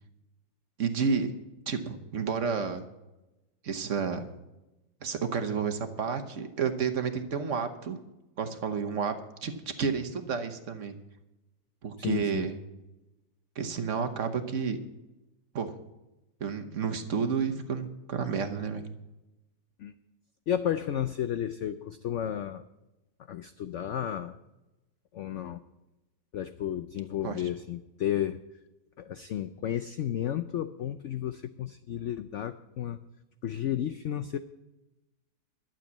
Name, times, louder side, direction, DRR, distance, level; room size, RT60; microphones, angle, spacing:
voice 1, 0.8-1.3 1.7-2.8 3.6-4.3 5.0-8.0 8.4-9.2 9.4-10.9 11.8-12.6 13.6-14.8 15.5-15.7 16.4-18.8 27.2-27.4, right 6 dB, 50° right, 7 dB, 1.2 m, -30 dB
voice 2, 12.0-12.5 19.8-19.9 20.5-22.6 23.3-24.4 25.1-25.6 26.3-28.4 29.0-33.0 33.4-34.4, left 10 dB, 90° left, 11 dB, 0.6 m, -32 dB
12.0 x 7.4 x 8.3 m, 0.99 s
omnidirectional pair, 1.9 m